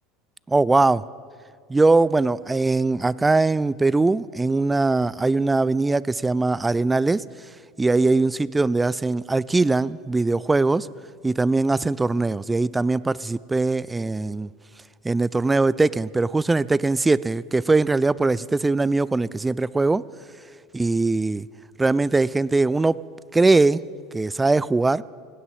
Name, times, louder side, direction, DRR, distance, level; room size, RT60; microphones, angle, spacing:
voice 1, 0.5-1.0 1.7-7.2 7.8-10.9 11.2-14.5 15.0-20.0 20.7-21.5 21.8-23.0 23.3-23.8 24.1-25.0, right 3 dB, 15° right, 21 dB, 0.3 m, -21 dB
17.0 x 9.9 x 7.3 m, 2.1 s
hypercardioid pair, 85°, 0 cm